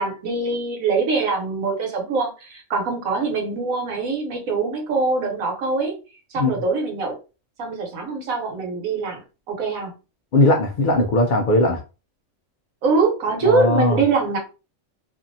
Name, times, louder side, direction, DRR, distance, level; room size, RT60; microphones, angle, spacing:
voice 1, 0.0-6.0 6.3-7.2 7.6-9.9 12.8-14.4, right 4 dB, 85° right, 1 dB, 1.3 m, -23 dB
voice 2, 10.3-11.8 13.4-14.0, left 1 dB, 90° left, 2 dB, 0.4 m, -18 dB
2.6 x 2.5 x 2.6 m, 0.31 s
omnidirectional pair, 1.4 m